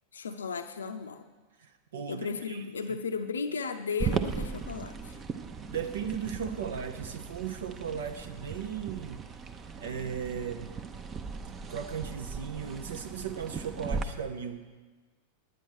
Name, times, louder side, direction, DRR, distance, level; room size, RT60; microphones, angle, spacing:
voice 1, 0.1-1.3 2.0-5.2, left 5 dB, 70° left, 7 dB, 0.5 m, -35 dB
voice 2, 1.6-2.6 2.9-3.0 5.7-9.3 9.8-10.8 11.6-14.6, right 7 dB, 65° right, 7 dB, 0.7 m, -37 dB
sound 1, 4.0-14.0, right 5 dB, 25° right, 0.7 m, -37 dB
10.0 x 9.1 x 6.1 m, 1.3 s
figure-of-eight pair, 90°, 0 cm